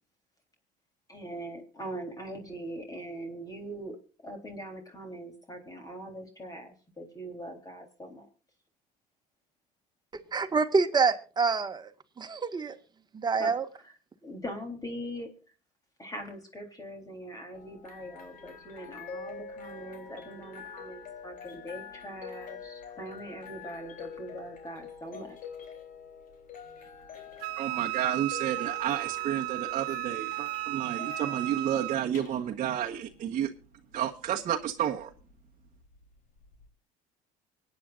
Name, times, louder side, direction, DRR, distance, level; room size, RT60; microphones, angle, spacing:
voice 1, 1.1-8.3 13.4-13.6 13.8-13.9 14.2-15.3 16.0-25.4, right 1 dB, 20° left, 3.6 m, -41 dB
voice 2, 10.3-11.9 12.2-12.8 13.1-13.6, right 4 dB, 25° right, 1.7 m, -26 dB
sound 1, 17.5-36.7, left 6 dB, 55° left, 3.6 m, -46 dB
Wind instrument woodwind instrument, 27.4-32.0, right 26 dB, 80° right, 0.9 m, -34 dB
voice 3, 27.6-33.5 33.9-35.1, right 10 dB, 50° right, 1.2 m, -31 dB
24.5 x 9.5 x 2.5 m
supercardioid pair, 100°, 16 cm